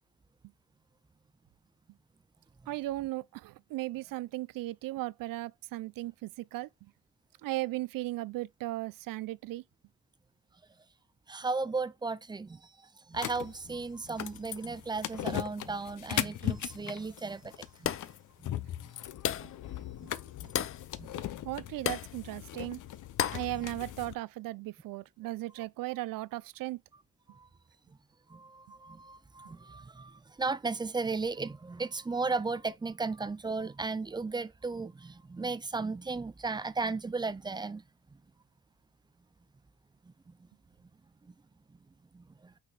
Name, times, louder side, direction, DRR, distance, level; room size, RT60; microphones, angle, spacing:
voice 1, 2.7-6.9 7.4-9.6 21.4-22.8 23.3-26.8, right 17 dB, 75° right, 0.6 m, -36 dB
voice 2, 11.3-17.9 18.4-18.5 19.4-19.5 20.0-20.1 20.4-20.5 21.0-21.1 27.3-27.5 28.3-37.8 40.0-40.5 41.2-41.3 41.7-41.8 42.1-42.5, right 4 dB, 15° right, 0.5 m, -35 dB
sound 1, 13.1-24.1, left 12 dB, 60° left, 0.9 m, -39 dB
sound 2, 17.8-18.2 19.2-19.6 20.5-20.8 21.9-22.1 23.2-23.5, left 10 dB, 40° left, 0.5 m, -32 dB
8.8 x 4.7 x 4.1 m
cardioid pair, 120°, 34 cm